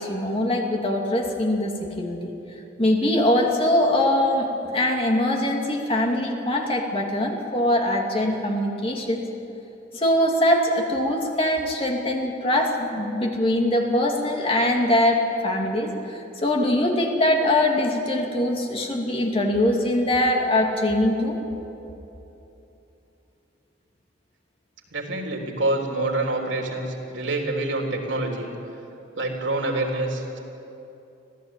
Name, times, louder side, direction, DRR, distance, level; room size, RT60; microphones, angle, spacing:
voice 1, 0.0-2.3 2.8-9.2 9.9-21.4, left 1 dB, 30° left, 1 dB, 2.6 m, -22 dB
voice 2, 24.9-28.5 29.2-30.4, right 2 dB, 80° right, 1 dB, 3.7 m, -26 dB
25.5 x 16.5 x 9.1 m, 2.9 s
head